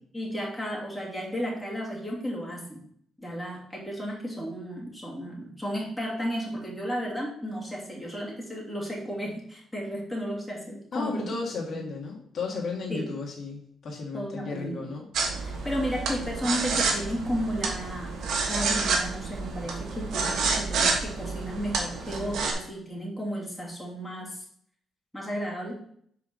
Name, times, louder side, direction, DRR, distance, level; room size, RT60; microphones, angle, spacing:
voice 1, 0.1-2.8 3.2-11.3 11.7-11.8 12.9-13.1 14.1-14.9 15.6-18.2 18.5-24.4 25.1-25.8, equal, 5° left, -4 dB, 2.7 m, -33 dB
voice 2, 10.9-15.1 15.5-15.6, left 4 dB, 55° left, -2 dB, 1.7 m, -34 dB
sound 1, 15.1-22.5, right 4 dB, 70° right, 1.4 m, -29 dB
5.1 x 4.7 x 6.1 m, 0.65 s
cardioid pair, 90°, 0 cm